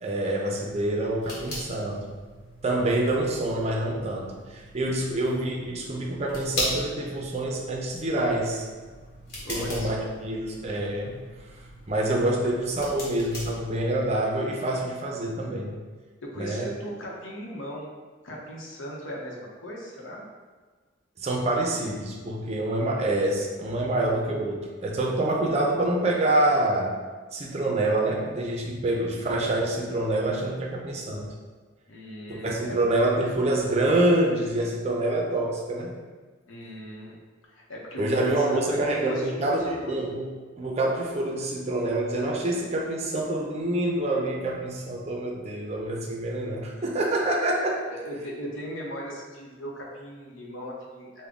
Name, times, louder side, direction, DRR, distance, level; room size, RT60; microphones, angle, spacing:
voice 1, 0.0-2.1 2.6-8.7 9.5-11.2 11.9-15.8 16.4-16.7 21.2-27.0 27.3-31.3 32.3-36.0 38.0-40.3 40.6-47.8, right 1 dB, 35° right, -1 dB, 0.5 m, -26 dB
sound 1, 0.6-14.2, left 1 dB, 55° left, 1.1 m, -39 dB
voice 2, 9.4-10.0 12.4-12.5 16.2-17.9 18.2-20.3 22.8-22.9 31.9-32.8 36.5-37.2 37.5-40.0 46.8-46.9 47.8-51.3, equal, 85° left, -2 dB, 0.8 m, -38 dB
3.7 x 2.1 x 3.5 m, 1.4 s
head